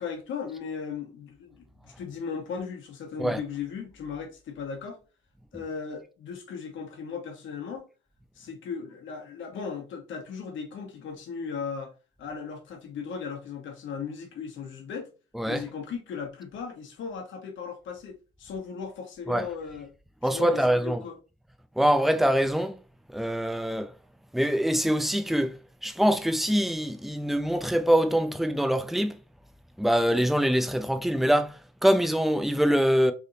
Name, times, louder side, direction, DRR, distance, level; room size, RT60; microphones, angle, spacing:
voice 1, 0.0-5.0 5.5-7.8 8.3-11.9 12.2-15.1 15.5-19.9 20.2-21.2, left 6 dB, 75° left, 1.1 m, -37 dB
voice 2, 20.2-21.0 21.8-22.8 23.1-23.9 24.3-29.2 29.8-33.1, equal, ahead, 0.4 m, -24 dB
3.4 x 2.8 x 2.7 m
cardioid pair, 90°, 20 cm